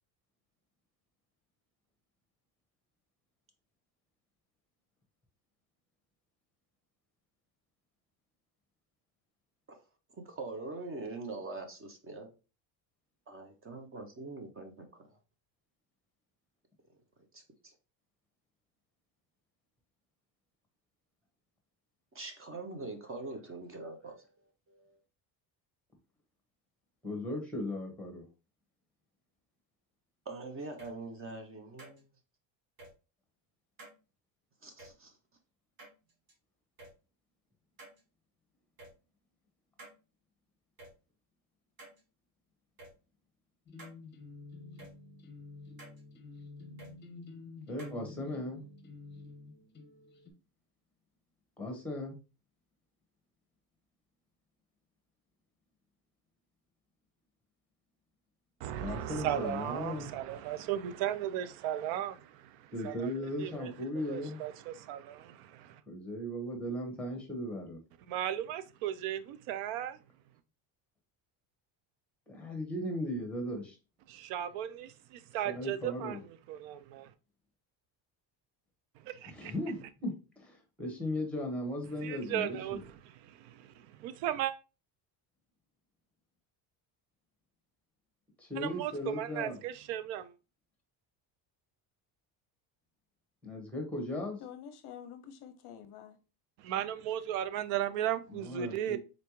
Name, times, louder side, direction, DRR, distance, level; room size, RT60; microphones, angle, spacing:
voice 1, 10.2-12.3 13.3-15.0 17.3-17.7 22.1-24.2 24.7-25.0 30.3-32.0 34.6-35.1, right 3 dB, 25° right, 0.7 m, -43 dB
voice 2, 27.0-28.2 47.7-48.6 51.6-52.2 58.8-60.1 62.7-64.4 65.9-67.8 72.3-73.8 75.4-76.2 79.3-82.8 88.4-89.6 93.4-94.4 98.3-99.0, left 1 dB, 5° left, 1.3 m, -37 dB
sound 1, 30.8-30.9 31.8-32.0 32.8-32.9 33.8-34.0 34.8-34.9 35.8-36.3 36.8-36.9 37.8-38.0 38.8-38.9 39.8-40.0 40.8-40.9 41.8-42.0 42.8-42.9 43.8-44.0 44.8-44.9 45.8-46.0 46.8-46.9 47.8-48.0, right 2 dB, 45° right, 1.7 m, -51 dB
sound 2, 43.7-50.3, left 3 dB, 20° left, 0.9 m, -50 dB
voice 3, 58.6-65.8 68.1-70.0 74.1-77.1 79.0-79.5 82.0-84.5 88.6-90.3 96.6-99.0, right 11 dB, 85° right, 0.6 m, -36 dB
voice 4, 94.1-96.2, left 9 dB, 55° left, 0.6 m, -48 dB
4.0 x 3.3 x 3.0 m
cardioid pair, 130°, 49 cm